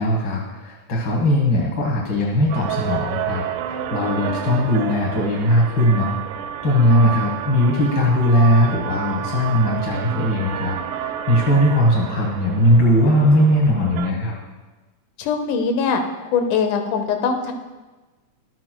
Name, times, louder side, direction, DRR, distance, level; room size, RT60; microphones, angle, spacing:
voice 1, 0.0-6.2 6.6-14.3, equal, 50° left, -3 dB, 1.4 m, -19 dB
sound 1, 2.5-14.1, right 9 dB, 85° right, 2.1 m, -30 dB
voice 2, 15.2-16.0 16.3-17.5, left 5 dB, 80° left, 6 dB, 2.2 m, -21 dB
12.0 x 8.9 x 2.2 m, 1.2 s
omnidirectional pair, 3.5 m